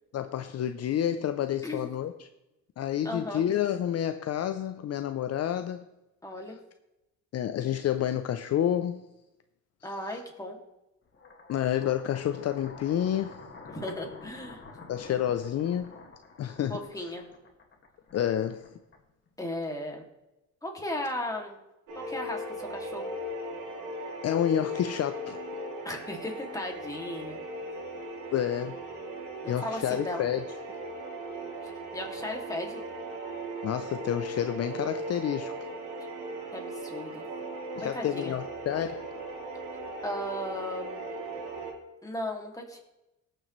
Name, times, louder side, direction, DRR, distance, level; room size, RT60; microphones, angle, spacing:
voice 1, 0.1-2.3 2.8-5.9 7.3-9.1 11.5-13.4 14.9-15.9 16.4-16.8 18.1-18.7 24.2-25.4 28.3-28.8 29.5-30.4 33.6-35.6 37.8-39.1, left 10 dB, 55° left, 9 dB, 0.6 m, -29 dB
voice 2, 3.0-3.4 6.2-6.6 9.8-10.6 13.7-14.6 16.7-17.2 19.4-20.0 20.6-21.6 22.0-23.1 25.8-27.4 29.4-30.2 31.9-32.8 36.5-37.2 37.8-38.3 40.0-41.0 42.0-42.8, left 1 dB, 10° left, 1 dB, 2.3 m, -36 dB
sound 1, 11.1-19.3, left 4 dB, 40° left, 1.9 m, -49 dB
sound 2, 21.9-41.7, right 1 dB, 85° right, 2.9 m, -38 dB
18.5 x 6.9 x 3.1 m, 0.95 s
cardioid pair, 90°, 30 cm